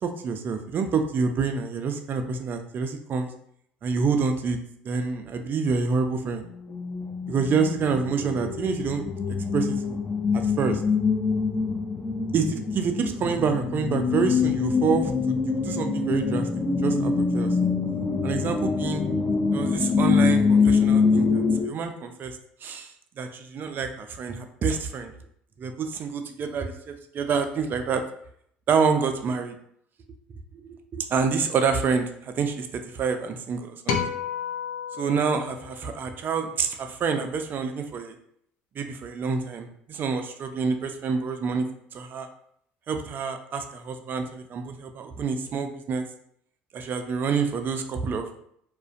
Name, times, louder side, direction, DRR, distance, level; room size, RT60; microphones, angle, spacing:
voice 1, 0.0-3.3 3.8-4.6 4.8-6.4 7.3-9.0 9.5-10.0 10.3-10.8 12.3-15.1 15.5-16.5 16.8-17.6 18.2-19.0 19.5-22.9 23.2-25.1 25.6-28.0 28.7-29.5 30.6-32.7 32.9-34.0 35.0-38.2 38.8-41.7 41.9-42.3 42.9-46.1 46.7-48.4, right 5 dB, 45° right, 6 dB, 0.4 m, -27 dB
sound 1, 6.4-21.6, left 5 dB, 25° left, 0.5 m, -24 dB
sound 2, 33.9-36.4, left 7 dB, 80° left, 0.4 m, -32 dB
2.4 x 2.1 x 2.5 m, 0.69 s
supercardioid pair, 75°, 5 cm